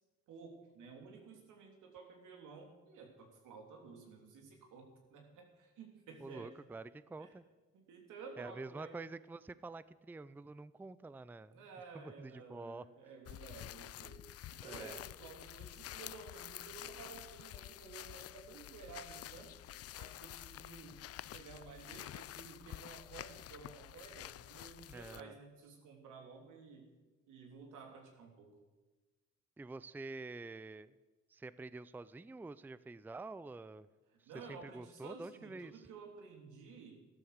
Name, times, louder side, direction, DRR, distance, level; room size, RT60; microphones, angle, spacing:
voice 1, 0.3-6.5 7.2-7.3 7.7-9.1 11.5-14.2 14.5-19.5 20.0-21.0 21.3-26.9 27.3-28.5 34.2-37.0, right 4 dB, 85° right, 3 dB, 3.2 m, -53 dB
voice 2, 6.2-7.4 8.4-11.7 11.9-12.9 14.6-15.0 24.9-25.3 29.6-31.0 31.3-33.9 34.2-35.8, right 3 dB, 5° right, 17 dB, 0.4 m, -48 dB
sound 1, 13.3-25.2, left 13 dB, 50° left, 0.4 m, -49 dB
13.5 x 13.0 x 6.6 m, 1.2 s
cardioid pair, 90°, 30 cm